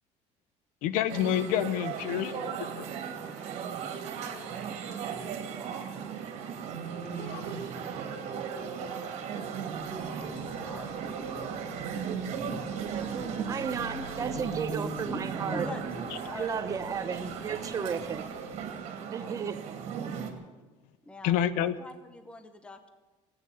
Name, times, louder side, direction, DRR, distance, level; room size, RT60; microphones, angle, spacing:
voice 1, 0.8-2.4 2.8-2.9 7.2-7.5 21.2-21.7, left 10 dB, 75° left, 15 dB, 1.0 m, -28 dB
sound 1, 1.1-20.3, right 6 dB, 55° right, 2.4 m, -36 dB
voice 2, 9.0-11.2 12.5-12.6 13.9-14.1 15.0-15.2 15.5-16.6 18.7-19.4 20.1-20.3 21.0-22.9, left 2 dB, 10° left, 8 dB, 0.9 m, -45 dB
sound 2, 9.7-18.7, left 1 dB, 55° left, 4.2 m, -51 dB
voice 3, 13.4-15.7 16.3-18.2 19.1-19.6, right 6 dB, 25° right, 10 dB, 0.9 m, -33 dB
15.5 x 9.2 x 10.0 m, 1.2 s
cardioid pair, 165°, 14 cm